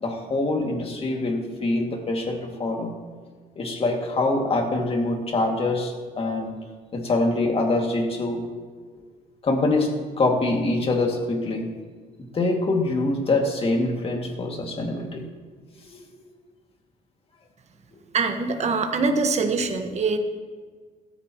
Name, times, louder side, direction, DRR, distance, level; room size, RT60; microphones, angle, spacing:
voice 1, 0.0-2.9 3.6-6.5 6.9-8.4 9.0-9.1 9.4-9.9 10.2-11.7 12.3-15.3 15.9-16.0, left 2 dB, 35° left, 1 dB, 2.3 m, -24 dB
voice 2, 18.1-20.2, right 4 dB, 40° right, 5 dB, 1.5 m, -23 dB
17.0 x 13.5 x 3.1 m, 1.5 s
cardioid pair, 110°, 17 cm